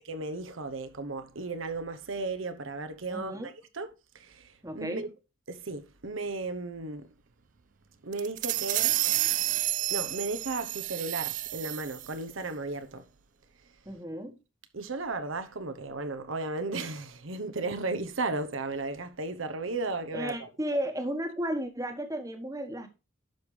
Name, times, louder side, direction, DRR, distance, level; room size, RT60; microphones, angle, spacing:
voice 1, 0.0-5.1 5.5-7.1 8.0-9.0 9.9-13.0 14.7-20.5, right 3 dB, 80° right, 1.0 m, -35 dB
voice 2, 3.1-3.5 4.6-5.1 13.8-14.4 20.1-22.9, right 1 dB, 15° right, 1.2 m, -34 dB
sound 1, 8.1-12.1, right 15 dB, 40° right, 0.3 m, -30 dB
11.5 x 5.2 x 3.2 m
head